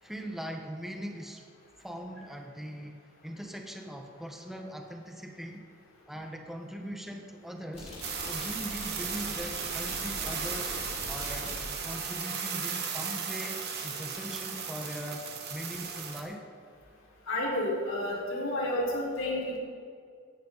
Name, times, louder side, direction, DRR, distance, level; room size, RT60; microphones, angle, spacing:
voice 1, 0.0-1.4 1.8-5.7 6.1-7.9 8.2-10.7 11.1-15.2 15.5-16.4, equal, ahead, 2 dB, 1.2 m, -41 dB
sound 1, 7.7-12.0, left 1 dB, 35° left, 4.7 m, -42 dB
sound 2, 8.0-16.2, right 6 dB, 55° right, 2.1 m, -36 dB
voice 2, 17.3-19.6, left 1 dB, 80° left, -4 dB, 5.0 m, -30 dB
18.5 x 14.0 x 4.1 m, 2.2 s
head